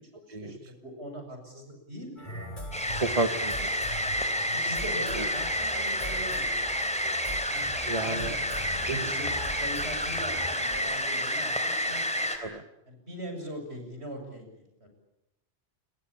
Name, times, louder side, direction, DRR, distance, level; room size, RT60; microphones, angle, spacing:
voice 1, 0.1-2.4 4.5-6.9 7.5-9.3 9.6-12.3 12.9-14.9, equal, 70° right, 5 dB, 7.5 m, -41 dB
sound 1, 2.2-10.8, equal, 45° left, 7.6 m, -41 dB
sound 2, 2.7-12.4, equal, 5° left, 3.6 m, -30 dB
voice 2, 3.0-3.7 7.9-8.4 8.8-9.1 12.4-12.6, right 3 dB, 30° right, 8 dB, 1.4 m, -30 dB
28.5 x 23.0 x 8.7 m, 0.90 s
omnidirectional pair, 1.1 m